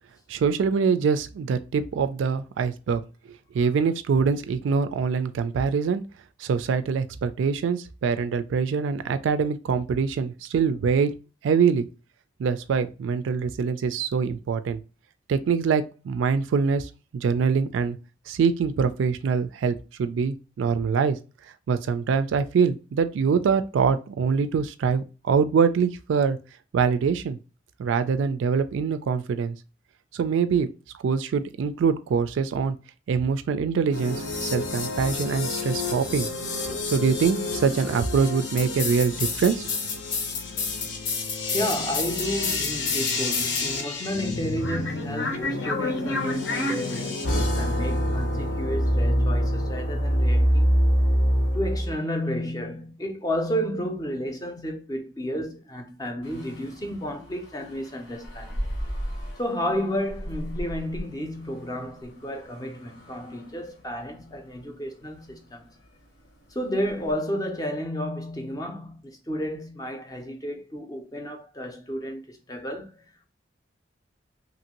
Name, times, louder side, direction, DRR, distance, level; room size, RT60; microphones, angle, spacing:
voice 1, 0.3-3.0 3.5-6.0 6.4-11.1 11.4-11.9 12.4-14.8 15.3-18.0 18.3-21.2 21.7-26.4 26.7-27.4 27.8-29.6 30.1-30.7 31.0-32.8 33.1-36.3 36.9-39.7, right 6 dB, 80° right, 0.3 m, -24 dB
sound 1, 33.9-51.9, left 1 dB, 70° left, 0.7 m, -26 dB
voice 2, 41.5-51.0 51.5-58.6 59.4-65.7 66.5-73.0, equal, 20° left, 0.5 m, -32 dB
sound 2, 56.2-67.2, equal, 85° left, 1.1 m, -39 dB
2.9 x 2.6 x 2.8 m
head